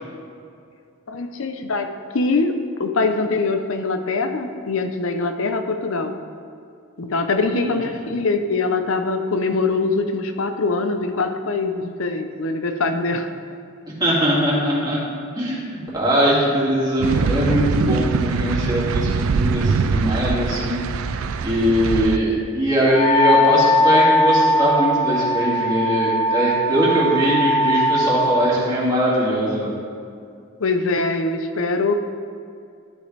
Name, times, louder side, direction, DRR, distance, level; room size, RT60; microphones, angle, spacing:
voice 1, 1.1-6.1 7.0-13.3 30.6-31.9, left 3 dB, 70° left, 7 dB, 0.6 m, -23 dB
voice 2, 7.4-8.1 14.0-15.0 15.4-20.7 21.1-29.7, equal, 20° right, -7 dB, 2.3 m, -21 dB
sound 1, 17.0-22.2, right 5 dB, 75° right, 0.4 m, -22 dB
Wind instrument woodwind instrument, 22.9-28.5, left 1 dB, 25° left, 0.5 m, -19 dB
12.5 x 6.3 x 3.3 m, 2.3 s
head